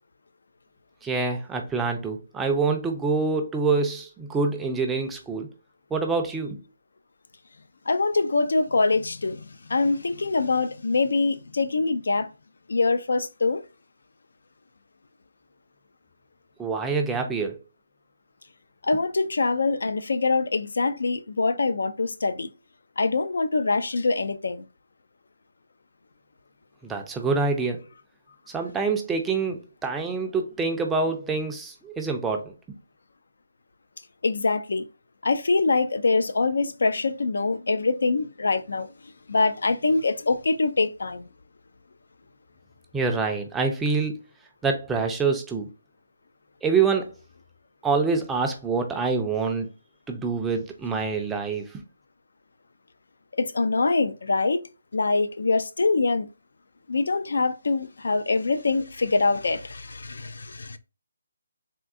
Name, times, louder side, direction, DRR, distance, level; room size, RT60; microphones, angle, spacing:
voice 1, 1.0-5.5 5.9-6.6 16.6-17.6 26.8-27.8 28.5-32.4 42.9-44.2 44.6-45.7 46.6-47.1 47.8-49.7 50.1-51.8, right 4 dB, 5° right, 0.4 m, -26 dB
voice 2, 7.9-12.3 12.7-13.6 18.8-22.5 23.0-24.7 34.2-34.8 35.2-38.9 39.3-41.3 53.4-54.7 54.9-56.3 56.9-60.8, left 3 dB, 75° left, 0.4 m, -24 dB
3.6 x 2.6 x 2.4 m
hypercardioid pair, 165°, 0 cm